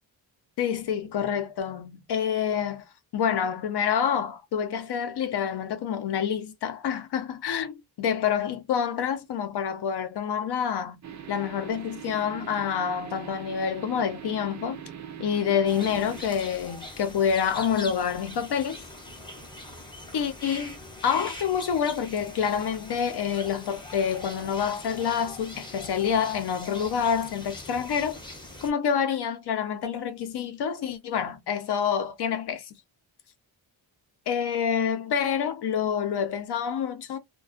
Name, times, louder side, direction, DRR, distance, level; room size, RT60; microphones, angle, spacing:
voice 1, 0.6-2.8 3.1-14.8 15.2-18.8 20.1-28.2 28.6-32.7 34.3-37.2, left 7 dB, 55° left, 0.6 m, -27 dB
sound 1, 11.0-16.2, right 8 dB, 40° right, 0.4 m, -41 dB
sound 2, 15.6-28.7, left 1 dB, 10° left, 0.6 m, -42 dB
2.4 x 2.2 x 2.3 m
wide cardioid pair, 150°, 47 cm